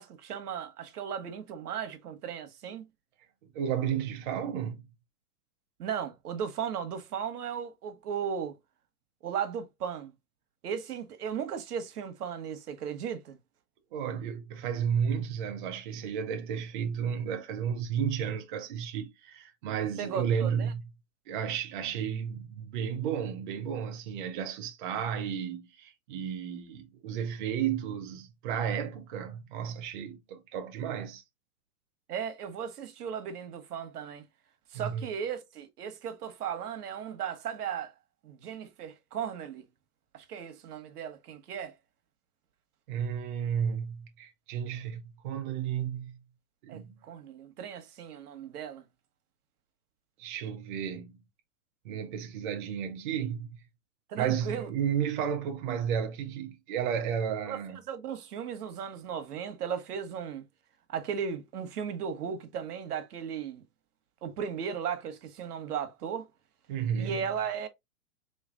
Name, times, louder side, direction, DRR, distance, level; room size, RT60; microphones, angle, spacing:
voice 1, 0.0-2.9 5.8-8.6 9.2-10.1 10.6-13.4 20.0-20.7 32.1-34.2 34.7-37.9 38.2-39.6 40.1-41.7 46.7-48.8 54.1-54.7 57.5-57.6 57.9-60.4 60.9-63.6 64.2-66.3 67.0-67.7, right 7 dB, 80° right, 1.1 m, -36 dB
voice 2, 3.5-4.8 13.9-20.9 21.3-31.2 34.7-35.1 42.9-46.2 46.6-46.9 50.2-51.2 51.8-53.6 54.2-57.8 66.7-67.3, right 8 dB, 35° right, 0.5 m, -33 dB
3.9 x 3.2 x 2.4 m
hypercardioid pair, 150°, 45 cm